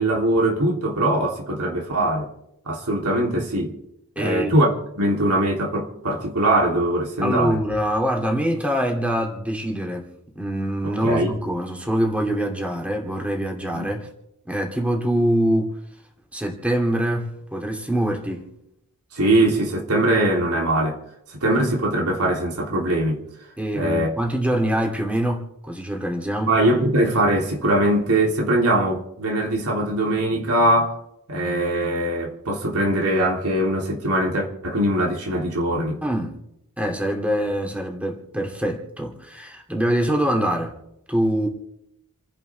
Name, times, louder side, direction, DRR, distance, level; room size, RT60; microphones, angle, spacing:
voice 1, 0.0-2.3 2.7-3.7 4.2-7.6 10.8-11.4 13.7-13.9 19.1-21.0 21.3-23.2 23.7-24.1 26.4-31.0 31.3-36.0, right 1 dB, 90° right, 3.2 m, -21 dB
voice 2, 4.2-4.5 7.2-10.1 10.3-14.1 14.5-15.8 16.3-18.5 23.6-26.5 36.0-36.4 36.8-40.7 41.1-41.5, right 1 dB, 5° right, 2.7 m, -24 dB
30.0 x 10.5 x 3.5 m
head